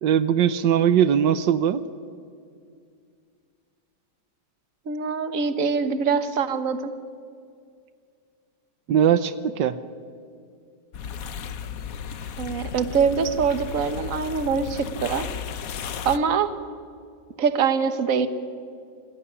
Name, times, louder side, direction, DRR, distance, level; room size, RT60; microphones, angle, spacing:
voice 1, 0.0-1.8 8.9-9.8, right 9 dB, 80° right, 13 dB, 1.5 m, -20 dB
voice 2, 4.9-6.9 12.4-15.3 16.0-16.6 17.4-18.3, right 6 dB, 50° right, 11 dB, 1.6 m, -24 dB
sound 1, 10.9-16.2, left 7 dB, 55° left, 1.3 m, -34 dB
28.0 x 18.5 x 10.0 m, 2.3 s
omnidirectional pair, 1.9 m